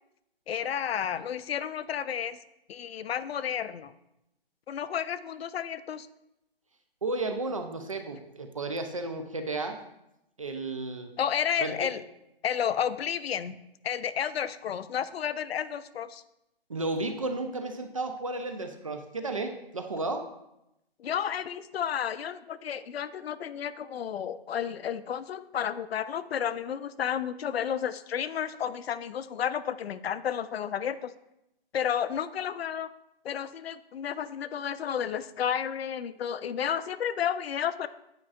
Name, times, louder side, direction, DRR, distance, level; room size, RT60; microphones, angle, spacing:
voice 1, 0.5-2.4 2.7-3.9 4.7-6.1 11.2-12.0 12.4-13.6 13.8-16.2 21.0-31.1 31.7-32.9 33.2-37.9, left 8 dB, 80° left, 14 dB, 0.5 m, -31 dB
voice 2, 7.0-9.8 10.4-11.1 11.6-11.9 16.7-20.2, right 2 dB, 35° right, 6 dB, 0.4 m, -33 dB
8.6 x 5.2 x 2.4 m, 0.86 s
hypercardioid pair, 170°, 30 cm